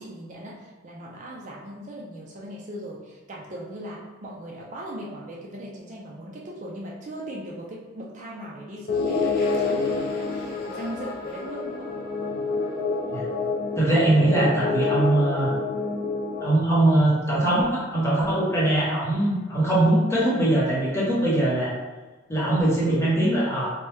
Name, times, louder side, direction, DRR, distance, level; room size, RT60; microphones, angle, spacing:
voice 1, 0.0-11.9, right 1 dB, 35° right, -4 dB, 0.4 m, -38 dB
sound 1, 8.9-16.4, left 4 dB, 50° left, 0.4 m, -27 dB
voice 2, 13.8-15.5 16.4-21.7 22.3-23.7, right 1 dB, 15° left, -7 dB, 0.8 m, -21 dB
2.8 x 2.2 x 3.2 m, 1.3 s
head